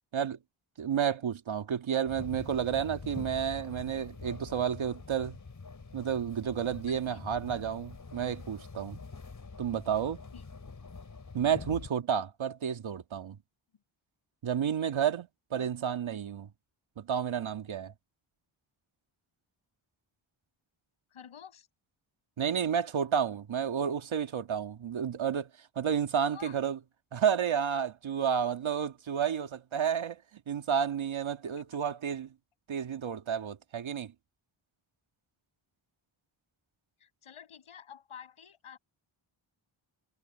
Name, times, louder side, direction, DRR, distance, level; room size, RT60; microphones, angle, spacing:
voice 1, 0.8-5.4 5.9-9.0 9.6-10.2 11.3-13.4 14.4-16.5 17.0-17.9 22.4-25.5 25.8-26.8 27.1-30.2 30.5-32.3 32.7-34.1, right 8 dB, 70° right, 1.9 m, -31 dB
sound 1, 2.1-11.9, left 4 dB, 40° left, 6.3 m, -45 dB
voice 2, 7.0-7.4 10.3-10.4 15.5-15.7 21.1-21.7 26.3-26.6 37.0-38.8, left 8 dB, 85° left, 6.8 m, -50 dB
wide cardioid pair, 100°, 49 cm